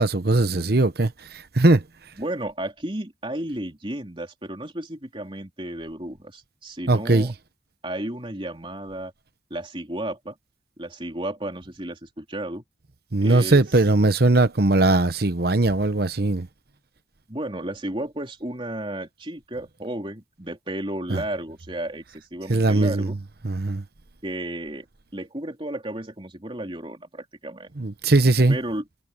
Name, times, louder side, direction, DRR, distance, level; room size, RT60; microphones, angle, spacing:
voice 1, 0.0-1.8 6.9-7.3 13.1-16.5 21.1-21.2 22.5-23.1 23.4-23.8 27.8-28.6, right 2 dB, 50° right, 0.9 m, -20 dB
voice 2, 2.2-7.3 7.8-9.1 9.5-10.4 10.8-12.6 13.2-13.6 17.3-23.2 24.2-24.9 25.1-27.7 28.5-28.8, right 1 dB, 25° right, 3.5 m, -33 dB
head